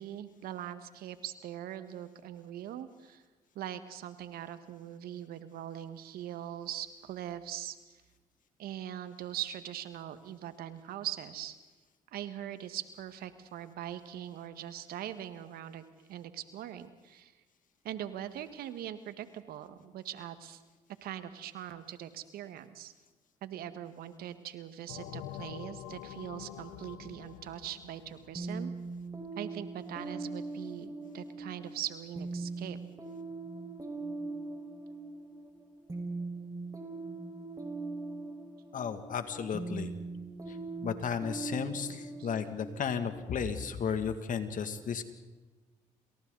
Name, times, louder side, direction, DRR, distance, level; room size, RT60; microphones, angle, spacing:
voice 1, 0.0-3.2 3.5-7.8 8.6-11.6 12.1-15.8 16.1-17.3 17.8-20.6 21.0-22.9 23.4-28.7 29.4-32.8 42.2-42.3, right 11 dB, 75° right, 11 dB, 1.7 m, -41 dB
sound 1, 24.9-29.3, left 11 dB, 80° left, 1.2 m, -46 dB
sound 2, 28.4-43.9, right 3 dB, 20° right, 5.2 m, -41 dB
voice 2, 38.7-39.9 40.5-40.6 40.8-45.1, left 7 dB, 55° left, 8 dB, 2.4 m, -34 dB
29.0 x 27.0 x 4.1 m, 1.2 s
hypercardioid pair, 55°, 16 cm